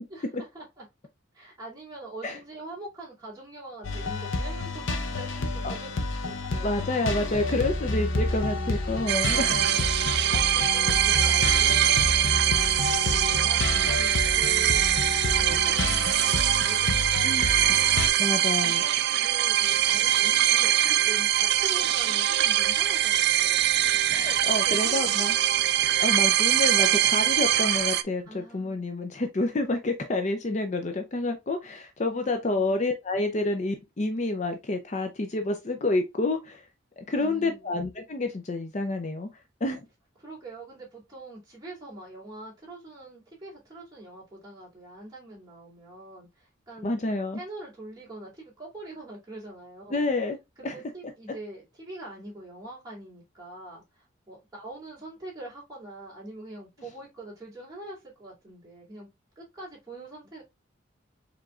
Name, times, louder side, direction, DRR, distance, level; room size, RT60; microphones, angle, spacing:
voice 1, 0.1-0.9 1.3-6.7 9.3-12.4 13.1-15.0 15.3-17.9 18.4-23.7 24.3-25.5 28.3-28.8 32.0-32.7 37.2-37.8 40.2-46.9 47.3-50.1 50.6-59.1 59.4-60.4, right 2 dB, 20° right, 2.6 m, -44 dB
sound 1, 3.8-18.1, left 2 dB, 70° left, 0.7 m, -30 dB
voice 2, 6.6-9.6 17.2-17.5 18.2-18.8 24.1-25.3 26.0-36.7 37.0-39.3 39.6-39.8 46.8-47.4 49.9-50.4 50.6-50.8, left 2 dB, 35° left, 0.5 m, -28 dB
sound 2, 9.1-28.0, right 12 dB, 55° right, 0.3 m, -23 dB
4.8 x 3.6 x 2.4 m
head